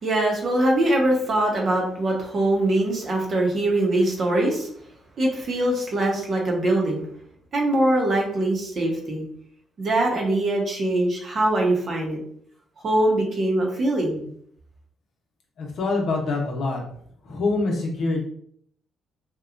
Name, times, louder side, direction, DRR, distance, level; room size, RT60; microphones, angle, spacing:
voice 1, 0.0-4.7 5.2-7.1 7.5-9.2 9.8-12.2 12.8-14.2, right 1 dB, 50° right, 0 dB, 0.8 m, -22 dB
voice 2, 15.6-16.8 17.2-18.3, left 3 dB, 70° left, 0 dB, 0.7 m, -25 dB
2.9 x 2.2 x 2.4 m, 0.64 s
cardioid pair, 90°, 0 cm